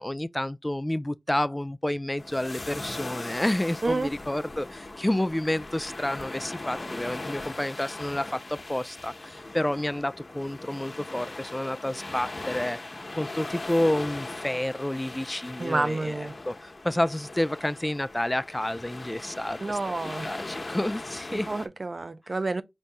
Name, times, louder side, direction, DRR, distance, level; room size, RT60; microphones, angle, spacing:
voice 1, 0.0-12.8 13.2-16.1 16.5-19.8 20.2-21.5, left 1 dB, 20° left, 0.3 m, -29 dB
sound 1, 2.2-21.7, left 2 dB, 55° left, 0.9 m, -39 dB
voice 2, 3.8-4.1 15.6-16.4 19.6-20.3 21.3-22.6, right 3 dB, 60° right, 0.5 m, -29 dB
5.2 x 2.7 x 3.3 m
wide cardioid pair, 55°, 0 cm